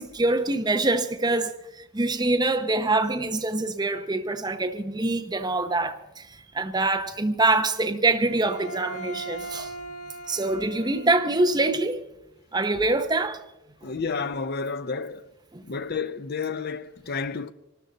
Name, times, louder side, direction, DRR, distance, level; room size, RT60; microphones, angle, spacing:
voice 1, 0.0-9.7 10.3-12.0 12.5-13.4 15.5-15.6, right 2 dB, 20° right, 0.8 m, -25 dB
Bowed string instrument, 8.2-11.6, right 2 dB, 80° left, 5.8 m, -39 dB
voice 2, 13.8-15.3 15.6-17.5, left 5 dB, 45° left, 0.6 m, -31 dB
24.5 x 13.0 x 4.0 m
head